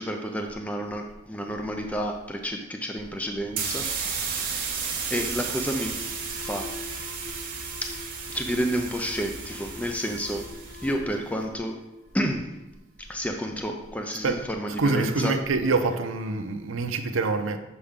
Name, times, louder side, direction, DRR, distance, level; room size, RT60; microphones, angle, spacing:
voice 1, 0.0-4.6 5.1-6.1 6.4-6.7 7.8-8.0 8.3-10.5 10.8-11.8 12.1-12.5 13.1-15.4, equal, 5° left, 3 dB, 0.4 m, -30 dB
sound 1, 3.5-10.9, right 5 dB, 45° right, 1.0 m, -33 dB
Alarm, 4.0-12.6, left 4 dB, 65° left, 1.0 m, -45 dB
voice 2, 14.8-17.6, right 3 dB, 85° right, 7 dB, 0.6 m, -25 dB
7.0 x 4.7 x 3.6 m, 1.0 s
head